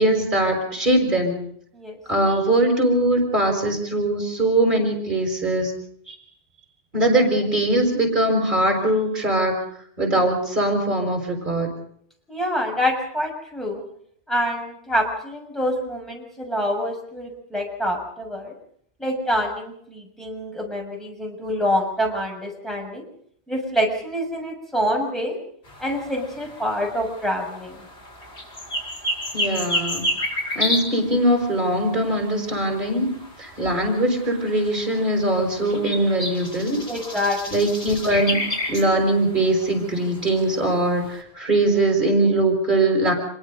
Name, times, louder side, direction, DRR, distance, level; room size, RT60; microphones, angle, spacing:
voice 1, 0.0-1.4 2.1-5.7 6.1-6.2 6.9-9.6 10.0-11.7 29.3-30.1 30.5-33.1 33.4-36.8 37.5-38.4 38.7-43.1, right 1 dB, 45° right, 3 dB, 5.7 m, -21 dB
voice 2, 12.3-13.8 14.3-18.5 19.0-23.0 23.5-25.4 25.8-27.8 36.9-37.5, equal, ahead, 0 dB, 6.7 m, -26 dB
sound 1, 25.7-41.2, left 1 dB, 85° left, 5.6 m, -32 dB
26.0 x 22.5 x 5.4 m, 0.66 s
omnidirectional pair, 1.1 m